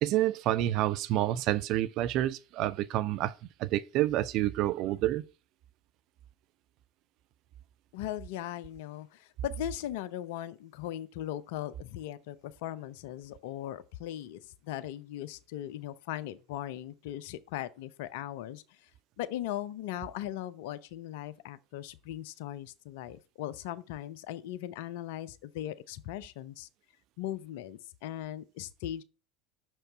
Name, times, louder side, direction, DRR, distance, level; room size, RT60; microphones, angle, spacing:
voice 1, 0.0-3.3 3.6-5.2, right 14 dB, 50° right, 0.4 m, -28 dB
voice 2, 7.9-18.9 19.2-26.7 27.2-29.0, left 12 dB, 60° left, 0.6 m, -39 dB
6.4 x 4.5 x 5.8 m
figure-of-eight pair, 75°, 0 cm